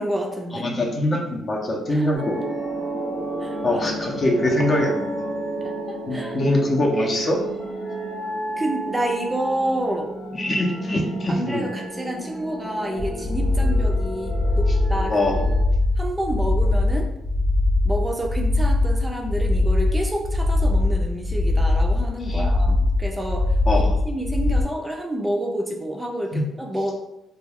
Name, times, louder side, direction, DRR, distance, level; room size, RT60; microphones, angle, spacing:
voice 1, 0.0-0.7 1.9-2.2 3.4-3.8 5.6-6.4 8.6-10.1 11.3-15.2 16.0-17.1 17.8-23.6 24.0-27.0, right 1 dB, 15° right, 1 dB, 0.4 m, -29 dB
voice 2, 0.5-2.4 3.6-5.3 6.1-7.4 10.3-11.7 15.1-15.3 22.3-22.5 23.7-23.9 26.3-26.5, left 1 dB, 40° left, 0 dB, 0.6 m, -23 dB
sound 1, 2.1-15.6, right 2 dB, 90° left, 1.2 m, -31 dB
sound 2, 13.0-24.6, left 2 dB, 55° left, 0.9 m, -21 dB
2.3 x 2.2 x 3.4 m, 0.90 s
cardioid pair, 85°, 0 cm